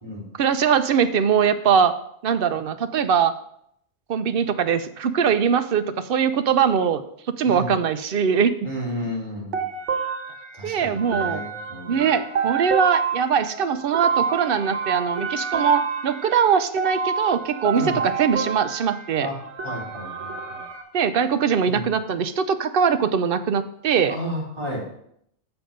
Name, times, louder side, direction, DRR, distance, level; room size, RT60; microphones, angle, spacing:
voice 1, 0.4-1.9 2.2-3.3 4.1-7.0 7.3-8.6 10.6-11.4 11.9-19.3 20.9-24.1, right 7 dB, 60° right, 10 dB, 0.7 m, -21 dB
voice 2, 8.6-9.6 10.5-12.0 17.7-18.0 19.2-20.6 21.6-21.9 24.0-24.8, equal, 25° right, -5 dB, 3.2 m, -32 dB
sound 1, 9.5-20.8, right 6 dB, 85° right, 1.3 m, -28 dB
7.2 x 6.8 x 5.0 m, 0.70 s
omnidirectional pair, 1.2 m